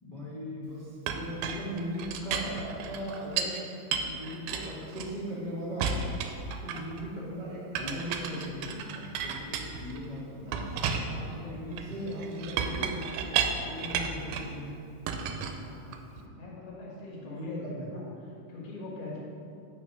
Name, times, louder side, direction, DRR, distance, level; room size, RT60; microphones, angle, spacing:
voice 1, 0.0-3.6 4.0-6.1 6.6-10.7 11.3-13.0 13.4-14.8 16.2-16.3 17.2-18.0, equal, 45° left, -9 dB, 0.5 m, -38 dB
Chink clink, 1.1-3.6 3.9-5.4 5.8-7.0 7.8-10.1 10.5-14.6 15.1-16.2, right 6 dB, 80° right, 2.0 m, -33 dB
voice 2, 6.8-7.1 10.2-12.2 13.7-14.2 15.6-16.0 16.3-19.2, left 2 dB, 70° left, -4 dB, 2.8 m, -44 dB
8.0 x 4.9 x 5.5 m, 2.5 s
omnidirectional pair, 3.7 m